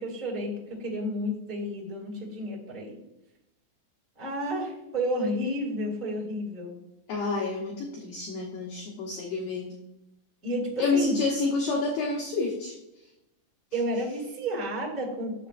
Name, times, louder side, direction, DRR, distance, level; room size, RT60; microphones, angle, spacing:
voice 1, 0.0-3.0 4.2-6.8 10.4-11.1 13.7-15.5, equal, 30° right, -5 dB, 0.9 m, -31 dB
voice 2, 7.1-9.7 10.8-12.8, left 3 dB, 75° left, -2 dB, 2.2 m, -29 dB
12.5 x 7.1 x 2.5 m, 0.91 s
omnidirectional pair, 5.5 m